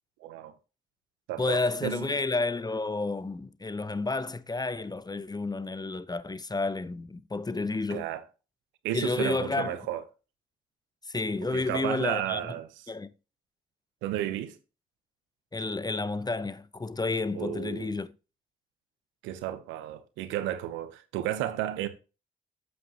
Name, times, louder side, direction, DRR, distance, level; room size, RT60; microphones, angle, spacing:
voice 1, 0.2-0.5 1.3-2.1 7.9-8.2 8.8-10.0 11.5-12.7 14.0-14.6 17.3-17.9 19.2-21.9, right 12 dB, 85° right, 0.8 m, -33 dB
voice 2, 1.4-8.1 8.9-9.8 11.1-12.4 12.9-13.1 15.5-18.1, left 3 dB, 20° left, 0.7 m, -30 dB
7.9 x 7.8 x 2.9 m
hypercardioid pair, 45°, 19 cm